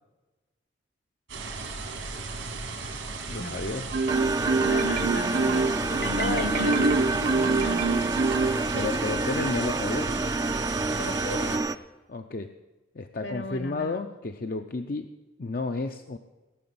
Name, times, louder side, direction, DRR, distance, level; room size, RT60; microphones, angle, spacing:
sound 1, 1.3-11.6, right 3 dB, 85° right, 2.6 m, -35 dB
voice 1, 3.3-3.9 8.7-10.1 12.1-12.5 12.9-15.1 15.4-16.2, left 3 dB, 50° left, 6 dB, 0.6 m, -32 dB
Marimba xylophone, 3.9-9.1, right 3 dB, 50° right, 0.9 m, -26 dB
sound 2, 4.1-11.8, right 3 dB, 20° right, 0.4 m, -28 dB
voice 2, 4.6-8.1 11.0-11.6 13.2-14.1, left 2 dB, 65° left, 9 dB, 1.4 m, -36 dB
17.5 x 6.2 x 8.6 m, 1.2 s
head